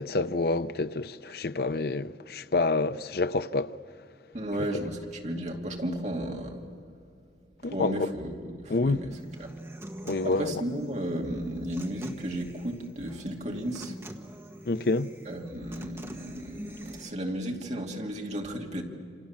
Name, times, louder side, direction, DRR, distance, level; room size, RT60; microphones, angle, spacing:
voice 1, 0.0-3.7 7.6-7.9 8.7-9.0 10.1-10.5 14.7-15.1, left 3 dB, 60° left, 0.6 m, -27 dB
voice 2, 4.3-6.6 7.6-9.5 10.2-14.0 15.2-18.8, right 1 dB, 40° right, 2.6 m, -34 dB
Human voice / Acoustic guitar, 9.1-17.1, right 1 dB, 15° right, 1.2 m, -45 dB
28.0 x 26.5 x 7.3 m
head